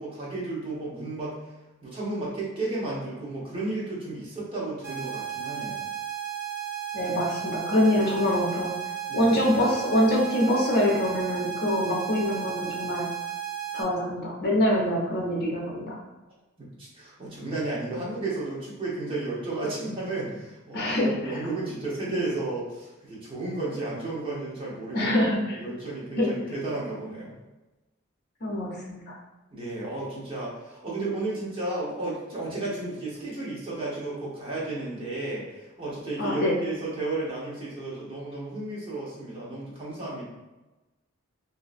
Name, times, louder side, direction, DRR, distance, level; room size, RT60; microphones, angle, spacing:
voice 1, 0.0-1.4 1.8-5.8 9.1-9.3 16.6-25.1 25.5-27.3 29.5-40.2, right 2 dB, 25° right, -6 dB, 1.0 m, -33 dB
sound 1, 4.8-13.8, right 9 dB, 50° right, 0.6 m, -34 dB
voice 2, 6.9-8.7 9.1-13.1 13.7-16.0 20.7-21.4 22.1-22.2 24.9-25.6 26.2-26.3 28.4-29.1 36.2-36.5, left 1 dB, 50° left, -2 dB, 0.8 m, -25 dB
3.0 x 2.7 x 2.5 m, 1.1 s
head